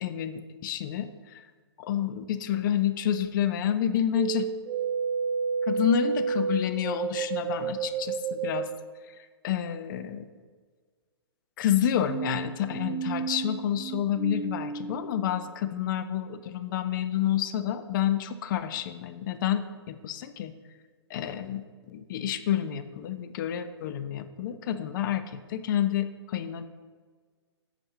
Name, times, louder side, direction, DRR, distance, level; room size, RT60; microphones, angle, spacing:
voice 1, 0.0-1.4 1.8-4.5 5.7-8.7 9.1-9.2 9.4-10.3 11.6-20.5 21.1-26.7, left 10 dB, 45° left, 11 dB, 0.6 m, -29 dB
sound 1, 4.1-8.7 12.0-15.3, right 6 dB, 15° right, 0.5 m, -31 dB
11.0 x 7.0 x 2.8 m, 1.5 s
hypercardioid pair, 135°, 14 cm